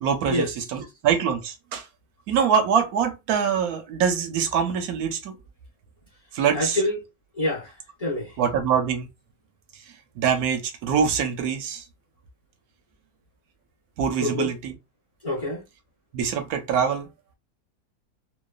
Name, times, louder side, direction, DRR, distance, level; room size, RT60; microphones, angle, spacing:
voice 1, 0.0-1.9 2.3-5.4 6.3-6.8 8.4-9.1 10.2-11.8 14.0-14.8 16.1-17.1, right 7 dB, 70° right, 1.0 m, -24 dB
voice 2, 6.5-7.0 7.4-7.7 8.0-8.3 14.2-14.5 15.2-15.6, left 1 dB, 40° left, 0.5 m, -26 dB
2.9 x 2.2 x 2.3 m
omnidirectional pair, 1.8 m